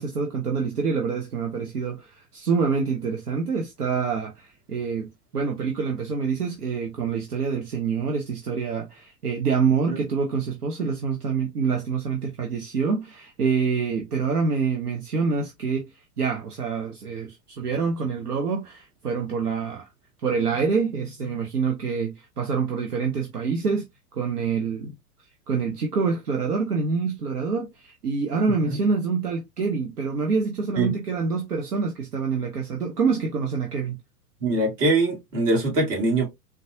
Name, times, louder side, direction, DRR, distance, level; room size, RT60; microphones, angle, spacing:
voice 1, 0.0-19.9 20.2-23.9 24.1-24.9 25.5-34.0, right 5 dB, 75° right, 0.8 m, -26 dB
voice 2, 34.4-36.3, right 2 dB, 55° right, 2.0 m, -23 dB
3.9 x 2.3 x 2.6 m
figure-of-eight pair, 100°, 47 cm